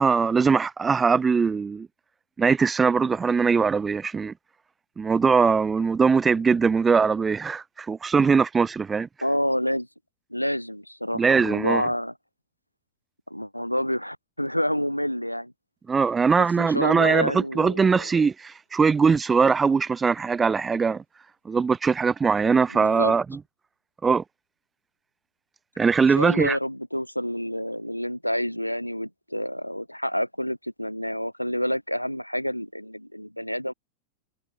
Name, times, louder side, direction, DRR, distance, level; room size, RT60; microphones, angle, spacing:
voice 1, 0.0-1.9 2.4-4.3 5.0-9.1 11.1-11.8 15.9-21.0 21.5-23.4 24.0-24.2 25.8-26.6, right 5 dB, 15° right, 0.4 m, -21 dB
voice 2, 9.2-9.9 10.3-12.1 13.3-15.5 16.3-18.1 22.7-23.1 26.2-33.7, equal, 90° left, 3.1 m, -28 dB
figure-of-eight pair, 90°, 0 cm